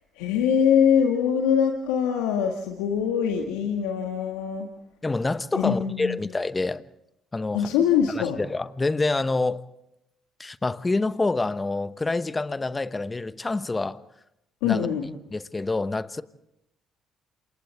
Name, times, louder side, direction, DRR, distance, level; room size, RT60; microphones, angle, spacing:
voice 1, 0.2-4.7 5.6-6.2 7.5-8.4 14.6-15.0, left 8 dB, 80° left, 1.9 m, -23 dB
voice 2, 5.0-6.8 7.3-7.7 8.1-9.6 10.4-14.0 14.6-14.9 15.3-16.2, left 3 dB, 25° left, 1.2 m, -27 dB
30.0 x 27.0 x 3.6 m
hypercardioid pair, 50°, 0 cm